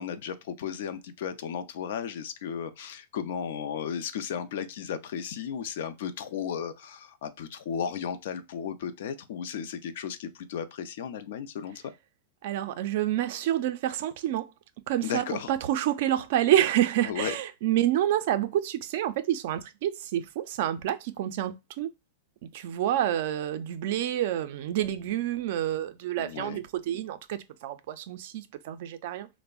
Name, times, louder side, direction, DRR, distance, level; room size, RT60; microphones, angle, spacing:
voice 1, 0.0-11.9 15.0-15.5 17.0-17.3 26.2-26.6, left 8 dB, 70° left, 0.4 m, -35 dB
voice 2, 12.4-14.5 14.9-21.9 22.4-29.3, right 12 dB, 60° right, 0.4 m, -28 dB
3.3 x 2.0 x 2.2 m
supercardioid pair, 145°, 0 cm